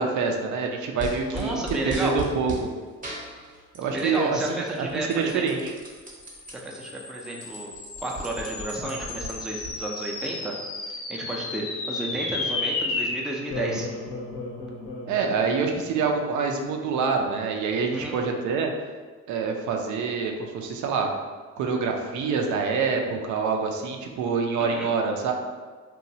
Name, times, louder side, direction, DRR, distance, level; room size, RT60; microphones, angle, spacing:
voice 1, 0.0-1.6 2.0-2.7 3.7-5.7 15.1-18.7 19.3-21.1 21.6-25.3, right 5 dB, 75° right, 3 dB, 0.5 m, -26 dB
sound 1, 1.0-2.7 3.0-4.2 4.5-6.5 7.0-7.1 7.3-9.7, right 2 dB, 25° right, 0.7 m, -37 dB
voice 2, 1.3-2.2 3.9-5.4 6.5-7.7 8.0-10.6 10.8-13.9 17.9-18.2 24.6-24.9, right 2 dB, ahead, -2 dB, 0.4 m, -32 dB
sound 2, 6.1-16.7, left 3 dB, 50° left, 0.6 m, -34 dB
3.0 x 2.2 x 2.7 m, 1.5 s
cardioid pair, 90°, 30 cm